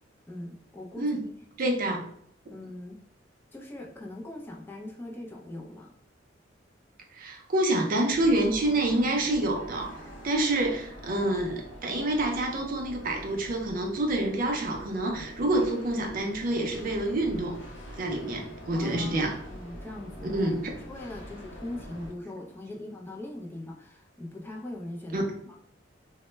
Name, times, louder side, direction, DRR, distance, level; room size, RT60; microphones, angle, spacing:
voice 1, 0.3-1.1 1.6-1.8 2.5-3.0 3.5-5.9 18.7-25.6, left 1 dB, 10° left, 0 dB, 0.4 m, -41 dB
voice 2, 1.6-2.0 7.1-17.6 18.0-19.4 20.2-20.7 25.1-25.2, right 1 dB, 50° right, 2 dB, 0.5 m, -27 dB
sound 1, 8.1-22.1, equal, 70° left, 0.6 m, -45 dB
2.1 x 2.0 x 3.1 m, 0.68 s
head